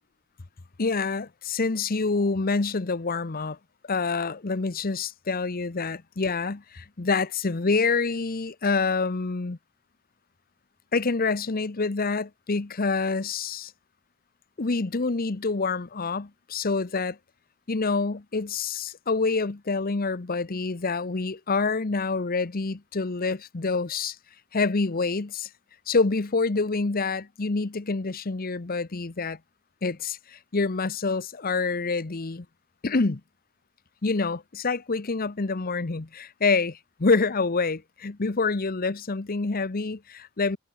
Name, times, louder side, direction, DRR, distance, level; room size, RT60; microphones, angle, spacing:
voice 1, 0.8-3.6 3.9-9.6 10.9-13.7 14.6-17.2 17.7-24.2 24.5-25.5 25.9-29.4 29.8-32.5 32.8-33.2 34.0-40.6, left 4 dB, 45° left, 0.9 m, -27 dB
head